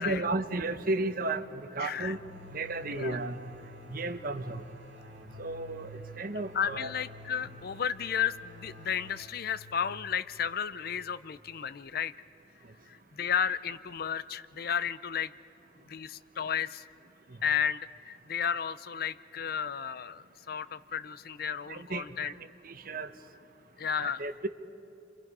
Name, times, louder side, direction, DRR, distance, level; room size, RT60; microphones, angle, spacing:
voice 1, 0.0-2.2 2.5-3.4 3.9-4.6 5.4-6.9 21.7-22.3 22.6-23.1 24.0-24.5, right 2 dB, 55° right, 10 dB, 1.0 m, -33 dB
voice 2, 1.8-2.1 2.9-3.2 6.5-12.1 12.9-15.3 15.9-16.9 17.4-22.3 23.8-24.2, left 8 dB, 60° left, 15 dB, 0.5 m, -33 dB
sound 1, 2.0-11.5, left 1 dB, 80° right, 2.2 m, -51 dB
30.0 x 25.0 x 5.4 m, 2.8 s
head